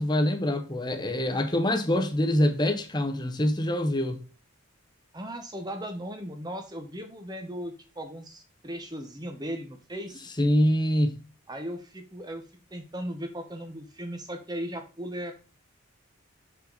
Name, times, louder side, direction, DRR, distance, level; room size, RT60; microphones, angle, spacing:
voice 1, 0.0-4.2 10.4-11.2, left 1 dB, 20° left, 0.9 m, -25 dB
voice 2, 5.1-10.2 11.5-12.4 12.7-15.4, equal, 20° right, 0.9 m, -37 dB
6.7 x 5.7 x 3.9 m
head